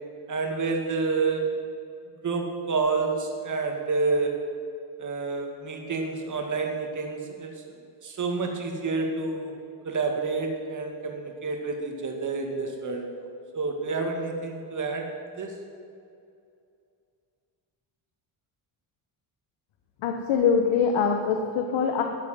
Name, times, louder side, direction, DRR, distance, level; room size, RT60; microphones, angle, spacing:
voice 1, 0.3-1.5 2.2-4.3 5.0-7.5 8.0-9.5 9.8-13.0 13.5-15.0 15.4-15.5, right 4 dB, 40° right, 2 dB, 2.2 m, -28 dB
voice 2, 20.0-22.0, left 6 dB, 80° left, 4 dB, 1.2 m, -23 dB
13.0 x 7.7 x 9.2 m, 2.5 s
cardioid pair, 140°, 46 cm